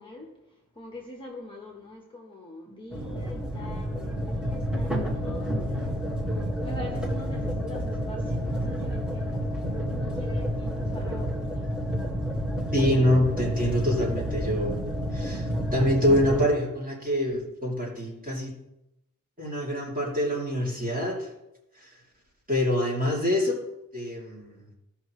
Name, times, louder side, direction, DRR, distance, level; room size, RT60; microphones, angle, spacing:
voice 1, 0.0-6.0 6.3-11.9, left 1 dB, 15° left, -1 dB, 1.2 m, -44 dB
sound 1, 2.9-16.5, equal, 5° right, 1.8 m, -29 dB
voice 2, 12.7-14.8 15.1-18.5 19.4-21.3 21.7-21.9 22.5-23.6 23.9-24.6, left 1 dB, 25° right, -5 dB, 2.9 m, -26 dB
16.0 x 5.7 x 3.2 m, 0.89 s
wide cardioid pair, 155°, 33 cm